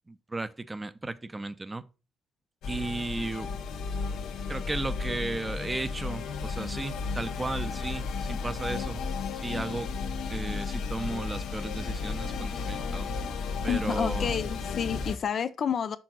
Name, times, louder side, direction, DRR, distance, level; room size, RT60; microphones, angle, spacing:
voice 1, 0.1-1.9 2.7-3.6 4.5-9.0 9.4-9.9 10.3-13.1 13.6-14.4, right 2 dB, 20° right, 0.6 m, -35 dB
sound 1, 2.6-15.2, left 4 dB, 80° left, 0.9 m, -33 dB
voice 2, 13.7-16.0, left 7 dB, 55° left, 0.4 m, -29 dB
6.2 x 3.8 x 6.0 m
cardioid pair, 90°, 0 cm